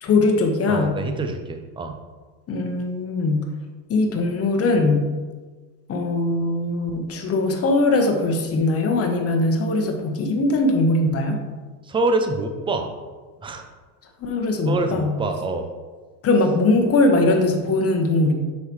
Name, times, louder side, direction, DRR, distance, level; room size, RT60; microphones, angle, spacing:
voice 1, 0.0-1.0 2.5-3.5 3.9-5.1 5.9-11.4 14.2-15.1 16.2-18.3, left 2 dB, 30° left, 4 dB, 1.1 m, -20 dB
voice 2, 0.7-2.0 11.9-12.9 13.4-13.6 14.7-15.7, right 2 dB, 10° right, 5 dB, 0.5 m, -25 dB
7.8 x 5.7 x 3.1 m, 1.4 s
supercardioid pair, 120°, 49 cm